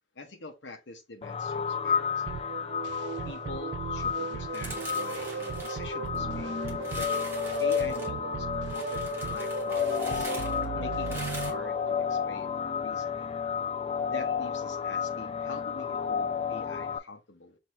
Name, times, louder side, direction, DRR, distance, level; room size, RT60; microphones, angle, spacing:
voice 1, 0.2-2.4 3.2-6.6 6.9-7.1 7.6-10.3 10.8-13.4 14.1-17.6, left 3 dB, 75° left, 0.9 m, -45 dB
sound 1, 1.2-17.0, left 7 dB, 30° left, 0.3 m, -32 dB
sound 2, 2.3-12.4, right 6 dB, 75° right, 0.3 m, -37 dB
sound 3, 4.5-6.3 6.7-8.1 8.7-11.5, right 2 dB, 15° right, 1.3 m, -43 dB
5.9 x 2.7 x 3.1 m
head